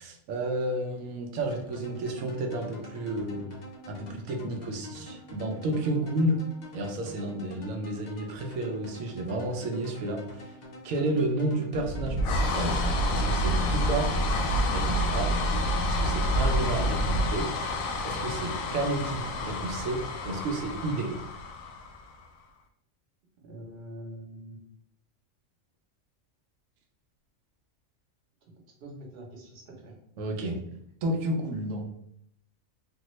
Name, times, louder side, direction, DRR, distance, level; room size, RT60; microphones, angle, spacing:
voice 1, 0.0-3.4 3.9-6.4 6.7-10.5 10.8-12.8 13.1-14.1 14.7-15.3 15.9-17.5 18.0-21.1 30.2-30.6 31.0-31.9, right 1 dB, 80° right, 3 dB, 1.0 m, -31 dB
sound 1, 1.4-16.5, left 1 dB, 70° left, 0.4 m, -46 dB
sound 2, 11.7-22.2, equal, 85° left, 1.0 m, -28 dB
voice 2, 23.4-24.6 28.8-29.9, right 1 dB, 55° right, -1 dB, 1.0 m, -44 dB
3.4 x 2.2 x 3.0 m, 0.72 s
omnidirectional pair, 1.4 m